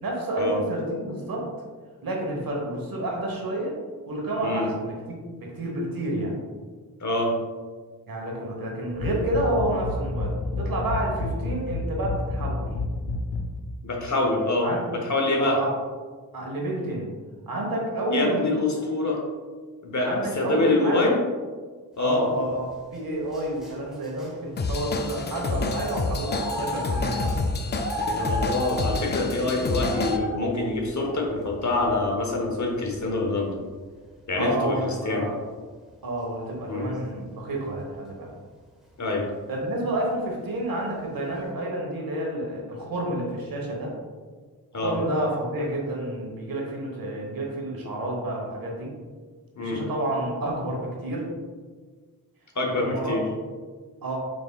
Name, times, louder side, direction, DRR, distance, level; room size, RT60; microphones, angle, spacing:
voice 1, 0.0-1.5 2.0-3.8 4.1-6.4 8.1-12.7 14.6-14.9 15.4-15.7 16.3-17.1 17.5-18.5 20.0-21.1 22.0-22.7 22.9-27.4 34.4-35.4 36.0-38.3 39.5-43.9 44.7-48.9 49.6-51.3 52.6-53.2 54.0-54.2, right 1 dB, 60° right, -1 dB, 1.1 m, -29 dB
voice 2, 7.0-7.3 13.8-15.6 18.1-19.2 19.8-21.2 22.0-22.2 28.0-33.5 34.3-35.2 36.7-36.9 39.0-39.2 44.7-44.9 49.6-49.8 52.5-53.2, left 2 dB, 45° left, 0 dB, 1.0 m, -25 dB
sound 1, 9.0-13.6, left 2 dB, 85° left, 0.5 m, -29 dB
sound 2, 22.7-24.3 24.8-25.0 25.3-25.5 25.8-27.4 27.8-29.1 29.6-32.6 32.9-33.3 34.9-35.0, equal, ahead, 1.1 m, -34 dB
Drum kit / Drum, 24.6-30.2, left 3 dB, 30° left, 0.4 m, -28 dB
4.8 x 3.3 x 2.3 m, 1.5 s
cardioid pair, 45°, 39 cm